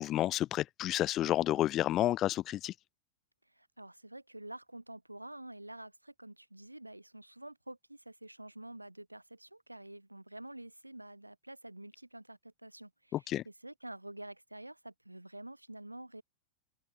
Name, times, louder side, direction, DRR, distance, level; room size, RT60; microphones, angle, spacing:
voice 1, 0.0-2.7 13.1-13.4, left 13 dB, 35° left, 0.4 m, -30 dB
voice 2, 3.5-16.2, right 1 dB, 85° right, 4.5 m, -48 dB
open air
figure-of-eight pair, 90°, 0 cm